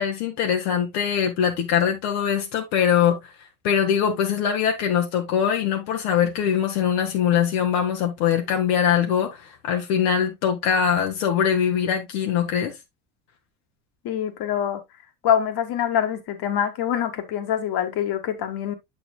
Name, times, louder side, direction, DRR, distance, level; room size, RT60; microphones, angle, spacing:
voice 1, 0.0-3.2 3.6-12.7, left 8 dB, 85° left, 1.2 m, -22 dB
voice 2, 14.0-14.8 15.2-18.7, left 9 dB, 60° left, 1.5 m, -25 dB
7.0 x 6.8 x 2.3 m
supercardioid pair, 85°, 43 cm